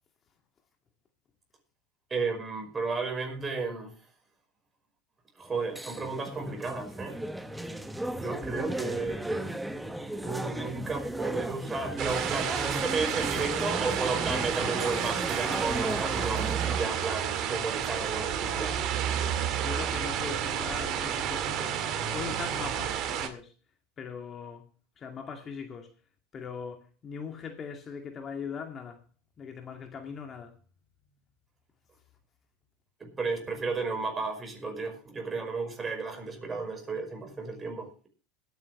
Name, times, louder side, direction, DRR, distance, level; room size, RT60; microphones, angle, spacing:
voice 1, 2.1-3.9 5.4-7.2 8.1-9.6 10.1-18.8 33.0-38.1, right 4 dB, 20° right, 5.2 m, -33 dB
sound 1, 5.5-16.8, right 1 dB, 5° right, 1.1 m, -35 dB
sound 2, 12.0-23.3, right 9 dB, 50° right, 2.1 m, -31 dB
voice 2, 19.5-23.5 24.0-24.7 25.0-25.9 26.3-29.0 29.4-30.6, left 6 dB, 35° left, 2.4 m, -40 dB
20.5 x 9.4 x 3.3 m
hypercardioid pair, 100°, 0 cm